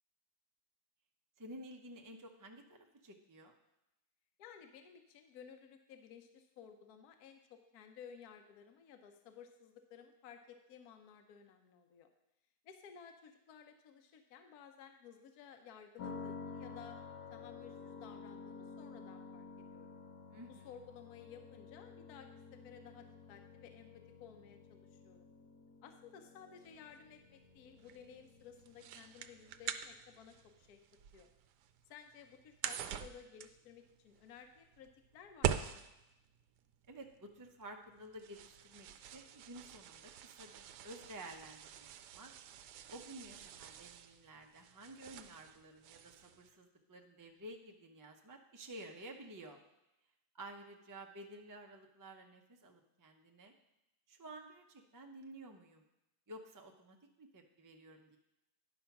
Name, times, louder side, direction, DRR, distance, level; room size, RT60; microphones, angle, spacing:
voice 1, 1.4-3.5 20.3-20.7 36.9-42.3 42.9-49.6 50.3-53.5 54.1-55.8 56.3-58.2, right 1 dB, 25° right, 3 dB, 0.4 m, -52 dB
voice 2, 4.4-12.1 12.6-17.0 17.3-19.5 19.7-19.9 20.5-25.3 25.8-30.8 31.1-31.3 31.9-35.7, left 7 dB, 70° left, 6 dB, 1.2 m, -56 dB
sound 1, 16.0-29.8, left 4 dB, 90° left, 1.6 m, -52 dB
sound 2, 26.6-46.5, right 10 dB, 85° right, 1.2 m, -45 dB
10.5 x 5.7 x 5.8 m, 0.92 s
omnidirectional pair, 1.7 m